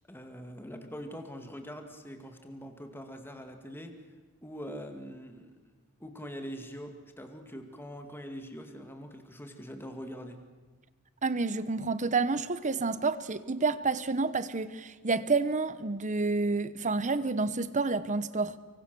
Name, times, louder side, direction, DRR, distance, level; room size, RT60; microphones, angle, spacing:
voice 1, 0.1-4.0 4.4-5.5 6.0-10.4, equal, 10° left, 2.2 m, -43 dB
voice 2, 11.2-18.5, right 3 dB, 35° right, 1.0 m, -29 dB
25.0 x 24.0 x 6.9 m
head